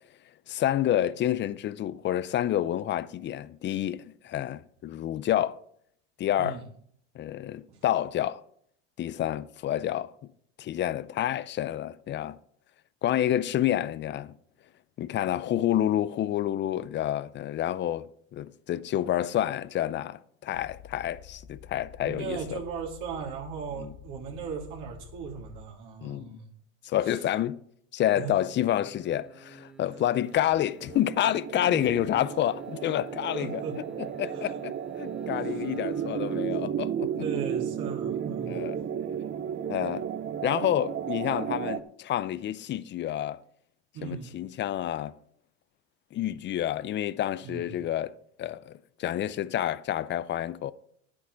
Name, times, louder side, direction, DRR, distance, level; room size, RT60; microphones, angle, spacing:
voice 1, 0.5-5.6 6.2-6.6 7.2-8.4 9.0-10.1 10.6-12.4 13.0-14.3 15.0-22.6 23.8-23.9 26.0-26.4 26.8-27.6 27.9-33.6 34.0-37.3 38.5-38.8 39.7-40.1 40.4-43.4 44.0-45.2 46.1-50.7, left 12 dB, 30° left, 0.5 m, -29 dB
sound 1, 20.5-25.7, left 9 dB, 80° left, 3.3 m, -49 dB
voice 2, 22.0-26.5 27.0-27.2 28.1-28.3 31.6-31.8 33.4-33.8 34.3-34.6 35.4-35.6 37.2-38.7 43.9-44.3 47.4-47.8, right 6 dB, 60° right, 3.2 m, -38 dB
sound 2, 28.7-36.5 36.9-37.0, right 3 dB, 5° right, 0.9 m, -51 dB
sound 3, 30.4-41.8, right 8 dB, 30° right, 0.7 m, -33 dB
10.0 x 8.5 x 4.7 m
supercardioid pair, 105°, 35 cm